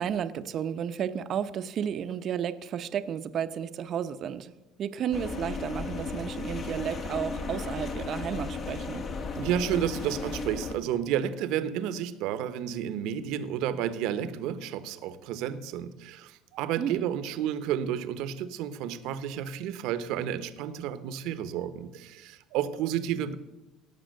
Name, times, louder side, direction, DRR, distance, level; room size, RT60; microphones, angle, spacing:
voice 1, 0.0-4.5 4.8-9.0 16.8-17.0, right 8 dB, 50° right, 11 dB, 0.7 m, -32 dB
sound 1, 5.1-10.8, left 4 dB, 45° left, 1.7 m, -35 dB
voice 2, 9.4-23.3, right 10 dB, 75° right, 13 dB, 1.0 m, -31 dB
18.0 x 7.1 x 6.5 m, 1.0 s
supercardioid pair, 100°, 0 cm